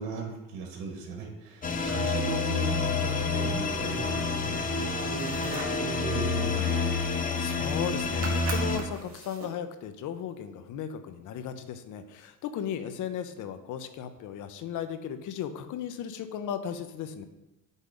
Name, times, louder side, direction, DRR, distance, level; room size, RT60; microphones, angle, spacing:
voice 1, 0.0-6.8, right 4 dB, 75° right, 0 dB, 1.9 m, -37 dB
sound 1, 1.6-8.8, left 4 dB, 25° left, 0.8 m, -28 dB
sound 2, 5.0-5.8 7.3-7.4 7.6-7.9 8.2-9.6, right 4 dB, 40° right, 1.8 m, -40 dB
voice 2, 7.4-17.2, left 8 dB, 60° left, 10 dB, 0.8 m, -36 dB
8.2 x 3.6 x 5.2 m, 0.96 s
supercardioid pair, 95°, 35 cm